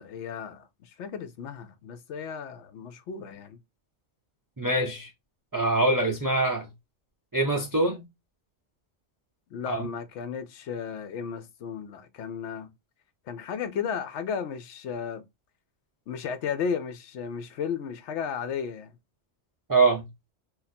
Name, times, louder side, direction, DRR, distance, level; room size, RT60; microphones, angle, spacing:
voice 1, 0.0-3.6 9.5-12.7 13.3-15.2 16.1-18.9, left 7 dB, 75° left, 0.9 m, -34 dB
voice 2, 4.6-5.1 5.5-6.7 7.3-8.1 9.7-9.9 19.7-20.1, right 2 dB, 30° right, 0.3 m, -24 dB
2.6 x 2.4 x 4.0 m
omnidirectional pair, 1.2 m